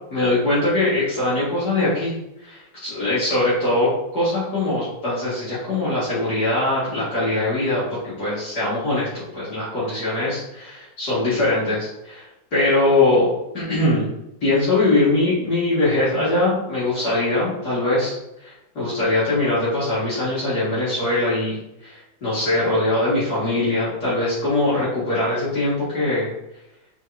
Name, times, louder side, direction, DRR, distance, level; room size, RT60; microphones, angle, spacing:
voice 1, 0.1-2.1 2.4-12.3 12.5-13.3 13.5-14.1 14.4-18.1 18.4-26.3, left 2 dB, 55° left, -11 dB, 2.6 m, -22 dB
8.8 x 3.7 x 2.8 m, 0.88 s
omnidirectional pair, 2.1 m